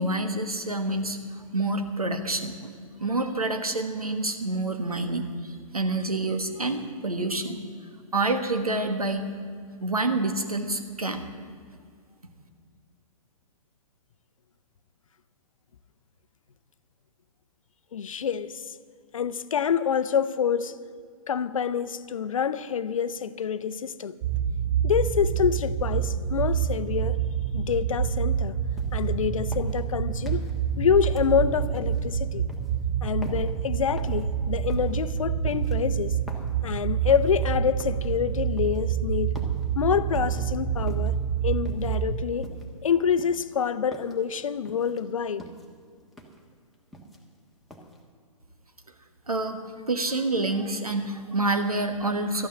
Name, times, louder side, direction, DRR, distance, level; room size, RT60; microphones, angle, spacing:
voice 1, 0.0-2.7 3.0-7.6 8.1-9.3 9.8-11.2 49.3-52.5, right 2 dB, 90° right, 1.4 m, -28 dB
voice 2, 17.9-18.7 19.1-20.7 21.3-24.2 24.8-27.2 27.5-28.6 28.9-30.4 30.8-32.4 33.0-36.1 36.6-39.3 39.8-41.2 41.4-42.5 42.8-45.5, left 7 dB, 65° left, 0.6 m, -26 dB
sound 1, 24.2-42.2, right 8 dB, 30° right, 0.7 m, -27 dB
sound 2, 28.8-29.1 29.5-30.6 31.0-32.0 32.5-32.7 33.2-33.6 34.0-34.3 34.7-35.0 35.5-36.6 37.1-37.4 37.8-38.1 38.6-38.9 39.3-39.7 40.1-40.4 40.9-41.2 41.6-42.0 42.4-42.8 43.2-44.2 44.6-45.0 45.4-45.7 46.1-46.4 46.7-47.4 47.7-48.0, equal, ahead, 1.4 m, -45 dB
13.0 x 9.3 x 7.7 m
figure-of-eight pair, 120°, 18 cm